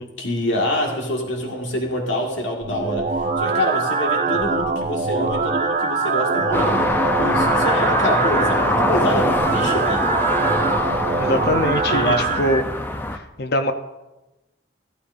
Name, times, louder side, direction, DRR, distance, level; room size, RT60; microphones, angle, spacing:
voice 1, 0.2-6.9 7.2-10.1 11.9-12.4, left 1 dB, 85° left, 0 dB, 1.8 m, -25 dB
sound 1, 2.6-12.6, right 4 dB, 40° right, 0.6 m, -23 dB
sound 2, 6.5-13.2, left 1 dB, 10° left, 0.5 m, -23 dB
voice 2, 11.2-12.6 13.1-13.7, left 1 dB, 55° left, 7 dB, 0.8 m, -23 dB
14.5 x 13.0 x 2.6 m, 1.0 s
head